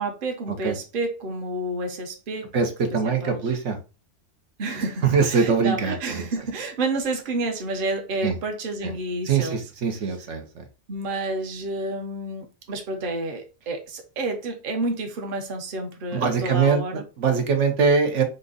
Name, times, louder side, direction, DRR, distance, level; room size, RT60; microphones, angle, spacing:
voice 1, 0.0-2.5 2.9-3.4 4.6-9.6 10.9-17.0, right 2 dB, 50° right, 1.0 m, -30 dB
voice 2, 2.5-3.8 5.0-6.3 8.2-8.4 8.8-8.9 9.2-10.7 16.1-16.8 17.2-18.2, right 5 dB, 80° right, 1.2 m, -22 dB
4.4 x 2.6 x 3.8 m
omnidirectional pair, 1.2 m